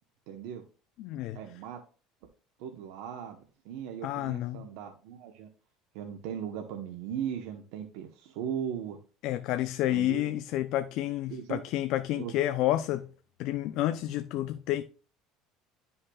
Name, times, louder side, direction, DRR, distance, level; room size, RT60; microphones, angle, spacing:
voice 1, 0.3-0.6 1.3-1.8 2.6-5.5 5.9-9.0 9.9-10.3 11.3-11.6 12.2-12.4, right 9 dB, 75° right, 0.9 m, -38 dB
voice 2, 1.0-1.4 4.0-4.7 9.2-13.1 13.4-14.8, left 14 dB, 60° left, 0.5 m, -30 dB
11.5 x 5.5 x 2.3 m
cardioid pair, 130°, 0 cm